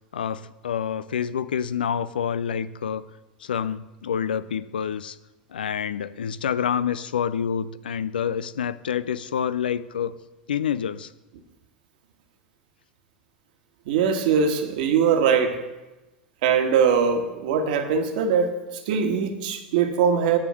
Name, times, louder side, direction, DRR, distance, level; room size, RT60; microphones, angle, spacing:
voice 1, 0.1-3.1 3.4-5.2 5.5-10.2 10.5-11.1, left 8 dB, 80° left, 16 dB, 0.4 m, -27 dB
voice 2, 13.8-15.6 16.4-20.4, right 6 dB, 65° right, 5 dB, 1.4 m, -21 dB
10.0 x 5.1 x 7.1 m, 1.0 s
hypercardioid pair, 85°, 5 cm